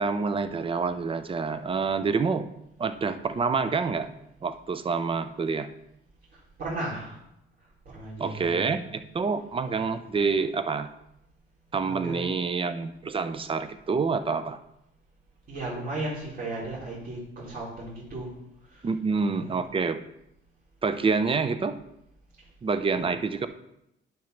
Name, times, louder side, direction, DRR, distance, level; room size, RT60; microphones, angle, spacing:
voice 1, 0.0-2.4 2.8-4.1 4.4-5.7 8.2-10.9 11.7-14.6 18.8-20.0 20.8-21.8 22.6-23.5, right 4 dB, 25° right, 11 dB, 0.5 m, -27 dB
voice 2, 6.3-7.2 7.9-8.7 11.8-12.4 15.5-18.3 18.7-19.6 22.9-23.0, right 2 dB, 50° right, -9 dB, 3.1 m, -36 dB
10.5 x 5.9 x 3.3 m, 0.81 s
cardioid pair, 120°, 21 cm